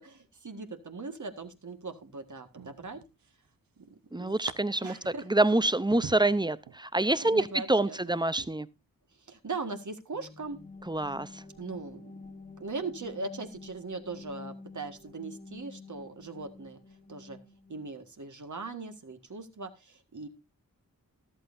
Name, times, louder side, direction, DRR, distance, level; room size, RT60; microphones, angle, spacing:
voice 1, 0.0-3.0 3.8-4.4 4.8-5.3 7.2-8.2 9.3-10.6 11.6-12.1 12.6-16.8 17.1-17.4 17.7-20.3, right 3 dB, 55° right, 1.7 m, -40 dB
sound 1, 1.4-1.9 2.6-3.5 3.8-4.5 5.0-6.8 7.3-7.6 8.3-8.5, right 7 dB, 75° right, 0.9 m, -46 dB
voice 2, 4.1-8.7 10.9-11.3, right 2 dB, 10° right, 0.6 m, -26 dB
sound 2, 10.1-17.9, left 3 dB, 20° left, 1.5 m, -49 dB
13.5 x 12.0 x 2.6 m
cardioid pair, 50°, 35 cm